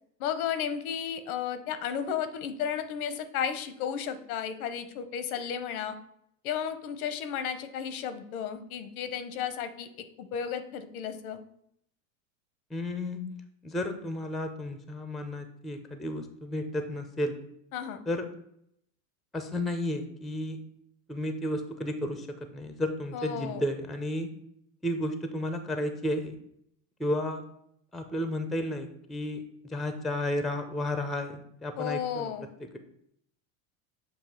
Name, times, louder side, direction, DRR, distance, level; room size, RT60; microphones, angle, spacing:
voice 1, 0.2-6.0 6.4-11.4 17.7-18.0 23.1-23.6 31.8-32.5, left 8 dB, 80° left, 11 dB, 0.9 m, -33 dB
voice 2, 12.7-13.2 13.6-17.4 18.1-18.3 19.3-20.6 21.1-22.3 22.5-24.3 24.8-26.4 27.0-27.4 27.9-29.4 29.7-32.3 32.6-32.8, left 1 dB, ahead, 7 dB, 0.4 m, -32 dB
7.2 x 2.8 x 5.7 m, 0.73 s
supercardioid pair, 115°, 42 cm